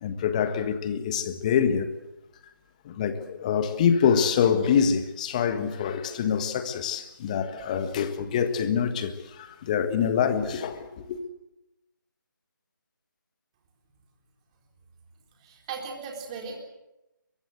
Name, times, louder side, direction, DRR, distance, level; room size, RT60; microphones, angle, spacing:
voice 1, 0.0-1.9 2.8-11.2, left 7 dB, 20° left, 1.6 m, -25 dB
voice 2, 15.4-16.6, right 5 dB, 20° right, 4.1 m, -37 dB
23.0 x 21.5 x 8.0 m
figure-of-eight pair, 160°, 11 cm